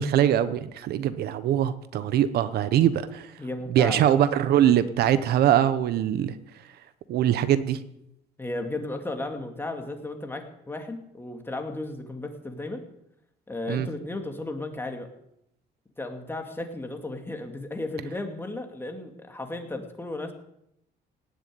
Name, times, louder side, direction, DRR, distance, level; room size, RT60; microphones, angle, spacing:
voice 1, 0.0-3.3 3.7-6.3 7.1-7.8 13.7-13.9, right 10 dB, 70° right, 13 dB, 1.0 m, -22 dB
voice 2, 3.4-4.0 8.4-12.8 13.5-15.1 16.0-20.3, left 2 dB, 15° left, 4 dB, 2.4 m, -34 dB
18.0 x 7.0 x 9.4 m, 0.79 s
cardioid pair, 110°, 17 cm